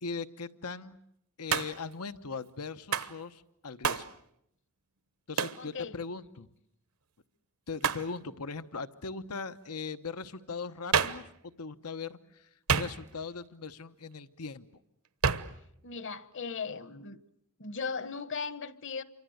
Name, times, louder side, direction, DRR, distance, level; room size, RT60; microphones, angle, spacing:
voice 1, 0.0-1.0 1.4-4.1 5.3-6.5 7.7-12.5 12.8-14.7, left 4 dB, 90° left, 1.0 m, -39 dB
Hands, 1.5-1.9 2.9-3.2 3.8-4.1 5.4-5.6 7.8-8.1 10.9-11.3 12.7-13.3 15.2-15.6, right 6 dB, 70° right, 1.1 m, -29 dB
voice 2, 5.6-6.0 15.8-17.2 17.6-19.0, left 5 dB, 55° left, 1.2 m, -37 dB
28.5 x 25.0 x 8.0 m
head